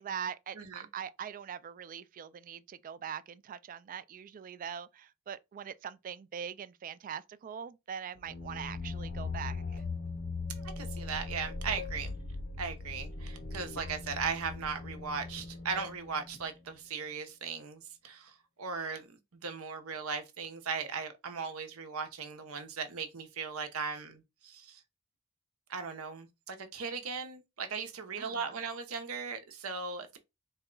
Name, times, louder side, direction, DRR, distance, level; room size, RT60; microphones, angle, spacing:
voice 1, 0.0-9.8 28.2-28.6, right 8 dB, 40° right, 0.3 m, -42 dB
voice 2, 0.6-0.9 10.5-12.2 12.6-18.3 18.6-19.1 19.4-24.8 25.7-30.2, right 5 dB, 80° right, 0.8 m, -38 dB
sound 1, 8.2-16.7, left 3 dB, 45° left, 0.6 m, -40 dB
4.1 x 2.2 x 3.7 m
head